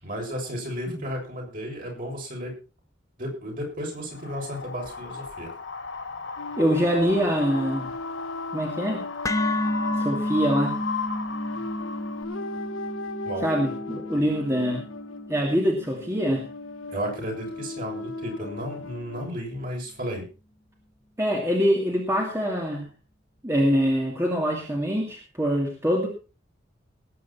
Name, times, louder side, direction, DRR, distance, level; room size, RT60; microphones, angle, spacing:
voice 1, 0.0-2.6 3.2-5.5 13.2-13.5 14.2-14.3 16.9-20.3, equal, 45° right, 0 dB, 6.9 m, -33 dB
Wind, 4.1-12.2, left 4 dB, 70° left, 3.3 m, -35 dB
sound 1, 6.4-19.3, left 2 dB, 90° left, 1.4 m, -37 dB
voice 2, 6.6-7.9 8.5-9.0 10.0-10.8 13.4-14.8 15.3-16.4 21.2-22.9 23.4-26.1, equal, 15° right, -1 dB, 2.5 m, -24 dB
sound 2, 9.2-17.4, left 1 dB, 15° left, 0.6 m, -32 dB
19.5 x 9.5 x 4.3 m, 0.33 s
head